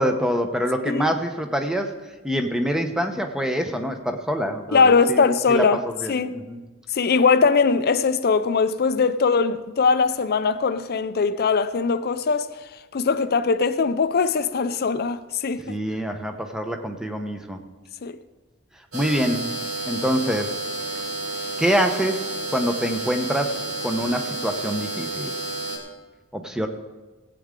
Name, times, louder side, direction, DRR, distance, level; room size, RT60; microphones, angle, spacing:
voice 1, 0.0-1.9 2.2-6.6 15.7-17.6 18.9-19.5 19.9-20.6 21.6-23.6 23.8-25.3 26.3-26.7, equal, 5° right, 0.8 m, -25 dB
voice 2, 4.7-5.8 6.1-6.4 6.9-12.5 12.9-15.6 18.0-18.2, left 5 dB, 45° left, 0.5 m, -20 dB
sound 1, 18.9-25.8, right 2 dB, 70° right, 2.2 m, -30 dB
17.0 x 8.6 x 3.8 m
head